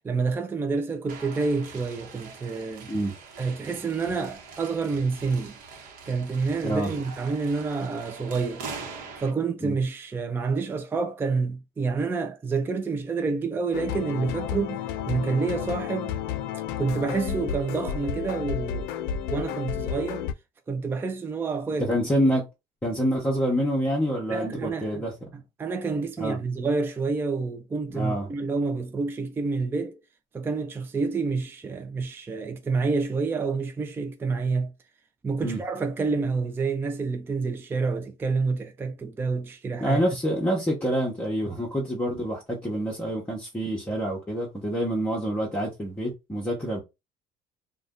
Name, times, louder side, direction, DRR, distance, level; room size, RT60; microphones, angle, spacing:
voice 1, 0.0-2.9 3.4-5.6 6.1-8.7 9.2-16.2 16.8-18.9 19.3-20.3 20.7-21.9 24.3-25.1 25.6-30.0 30.3-34.7 35.2-40.0, right 4 dB, 15° right, 0.3 m, -28 dB
sound 1, 1.1-9.3, right 4 dB, 60° right, 0.9 m, -43 dB
sound 2, 13.7-20.3, left 8 dB, 85° left, 0.4 m, -31 dB
voice 2, 21.8-22.4 22.8-25.1 26.2-26.4 27.9-28.3 35.4-35.6 39.8-46.8, equal, 10° left, 0.8 m, -27 dB
2.5 x 2.2 x 3.5 m
cardioid pair, 125°, 16 cm